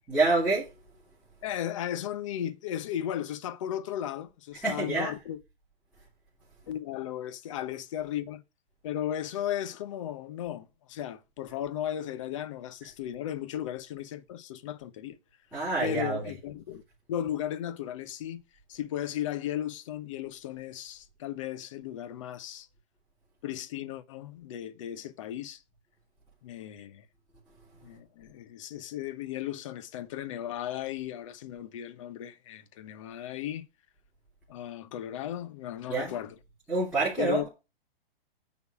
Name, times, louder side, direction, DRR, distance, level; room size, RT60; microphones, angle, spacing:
voice 1, 0.1-0.7 4.6-5.1 15.5-16.3 35.9-36.1 36.7-37.5, right 3 dB, 5° right, 3.0 m, -27 dB
voice 2, 1.4-5.4 6.7-8.4 8.8-15.2 15.8-16.8 17.1-18.4 18.7-22.7 23.4-25.6 26.4-27.0 27.8-33.6 34.5-36.4 37.2-37.5, left 11 dB, 30° left, 0.9 m, -35 dB
9.6 x 4.0 x 7.2 m
hypercardioid pair, 165°, 30 cm